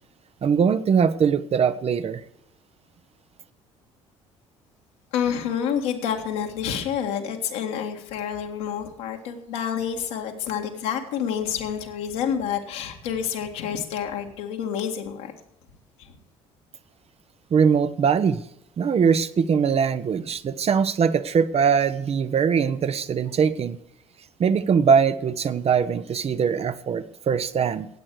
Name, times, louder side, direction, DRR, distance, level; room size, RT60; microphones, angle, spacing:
voice 1, 0.4-2.2 17.5-18.4 18.8-23.8 24.4-27.9, right 6 dB, 40° right, 11 dB, 0.8 m, -21 dB
voice 2, 5.1-15.3 16.0-16.1, left 8 dB, 70° left, 2 dB, 2.0 m, -28 dB
16.0 x 8.7 x 4.7 m, 0.83 s
figure-of-eight pair, 55°, 17 cm